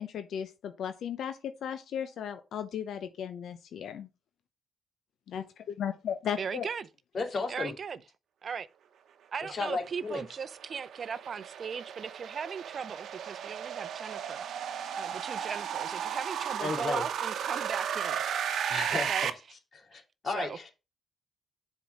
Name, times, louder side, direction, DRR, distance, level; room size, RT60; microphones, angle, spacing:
voice 1, 0.0-4.1 5.3-6.7, left 8 dB, 70° left, 0.7 m, -36 dB
voice 2, 6.4-6.9 7.5-8.0 8.4-8.7 9.3-18.2 18.9-19.3 20.2-20.6, right 6 dB, 45° right, 0.5 m, -38 dB
voice 3, 7.1-7.7 9.4-10.2 16.6-17.1 18.5-19.3 19.7-20.7, left 4 dB, 45° left, 2.5 m, -34 dB
sound 1, 9.7-19.3, right 8 dB, 70° right, 0.9 m, -34 dB
7.0 x 4.5 x 5.2 m
cardioid pair, 90°, 0 cm